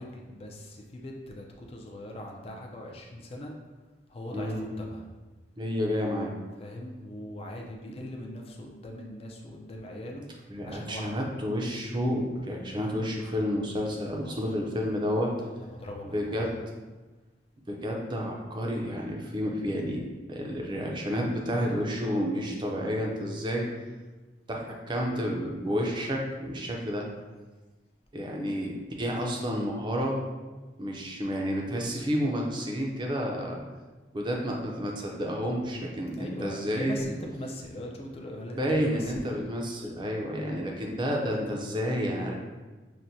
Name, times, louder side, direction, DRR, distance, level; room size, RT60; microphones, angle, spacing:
voice 1, 0.0-3.5 4.1-5.0 6.6-10.3 10.6-11.2 14.2-14.4 15.6-16.4 36.1-39.4, left 1 dB, 35° left, 0 dB, 0.4 m, -40 dB
voice 2, 4.3-4.7 5.6-6.3 10.5-15.3 16.1-16.5 17.7-20.0 20.3-23.7 24.5-27.1 28.1-30.2 30.8-33.6 34.1-37.0 38.6-42.4, equal, 25° right, 0 dB, 0.5 m, -30 dB
5.8 x 2.1 x 2.6 m, 1.2 s
head